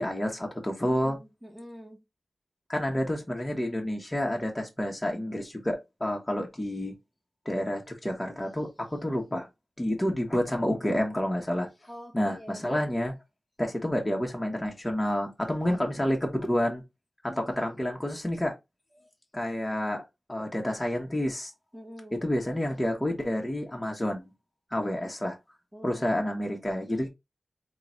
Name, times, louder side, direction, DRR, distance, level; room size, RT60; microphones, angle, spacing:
voice 1, 0.0-1.2 2.7-6.9 7.4-9.5 9.8-11.7 12.1-13.1 13.6-16.8 17.4-18.5 19.3-21.5 22.1-24.2 24.7-25.4 25.8-27.1, left 1 dB, 20° left, 1.1 m, -29 dB
voice 2, 0.8-2.0 11.9-12.9 15.6-15.8 17.3-17.6 21.7-22.2 25.7-26.2, equal, 15° right, 1.5 m, -46 dB
3.7 x 2.4 x 4.3 m
wide cardioid pair, 65°, 0 cm